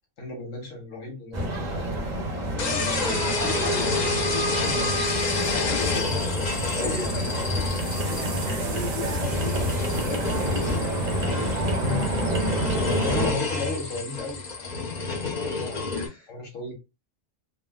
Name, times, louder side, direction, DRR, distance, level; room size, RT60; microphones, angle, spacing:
voice 1, 0.2-1.9 5.4-5.8 6.8-6.9 11.8-12.3 13.0-15.9 16.3-16.7, left 2 dB, 90° left, 1.7 m, -35 dB
sound 1, 1.3-13.3, right 1 dB, 40° right, 0.8 m, -28 dB
voice 2, 2.5-11.1 13.0-13.6 15.9-16.3, left 3 dB, 60° left, 1.3 m, -38 dB
sound 2, 2.6-16.1, left 3 dB, 40° left, 0.7 m, -29 dB
sound 3, 4.7-4.8 5.1-12.5 13.4-13.8, right 6 dB, 70° right, 0.9 m, -43 dB
3.6 x 2.1 x 2.3 m
omnidirectional pair, 1.3 m